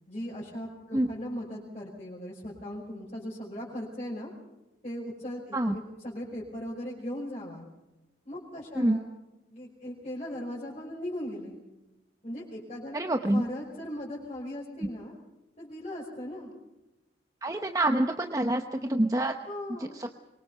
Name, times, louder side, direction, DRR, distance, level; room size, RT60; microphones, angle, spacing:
voice 1, 0.1-4.3 4.8-7.6 8.3-9.1 9.5-11.6 12.2-13.0 13.3-15.1 15.6-16.5 19.4-20.1, equal, 40° left, -5 dB, 5.4 m, -38 dB
voice 2, 12.9-13.4 17.4-19.3 19.9-20.1, right 1 dB, 20° right, 5 dB, 0.9 m, -26 dB
24.5 x 23.0 x 5.6 m, 0.98 s
head